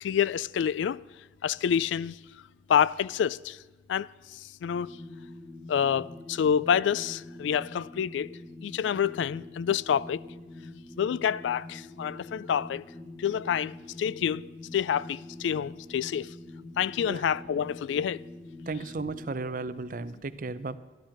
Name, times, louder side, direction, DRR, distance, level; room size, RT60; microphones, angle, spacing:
voice 1, 0.0-1.0 1.4-2.2 2.7-3.6 3.9-5.0 5.7-10.2 11.0-12.8 13.2-16.3 16.8-18.2, left 8 dB, 80° left, 0.3 m, -28 dB
sound 1, 4.8-19.4, left 2 dB, 5° left, 0.9 m, -45 dB
voice 2, 18.7-20.8, right 3 dB, 45° right, 0.6 m, -34 dB
12.5 x 12.0 x 5.9 m
head